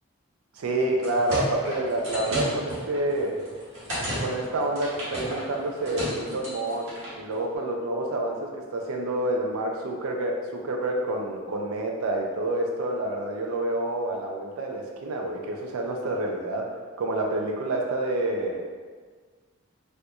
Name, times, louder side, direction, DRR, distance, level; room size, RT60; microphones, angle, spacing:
voice 1, 0.5-3.4 4.2-6.9 7.1-16.7 17.0-18.6, right 1 dB, 90° right, 0 dB, 0.4 m, -28 dB
sound 1, 0.8-7.2, equal, 70° right, 1.3 m, -34 dB
4.2 x 2.5 x 2.3 m, 1.5 s
head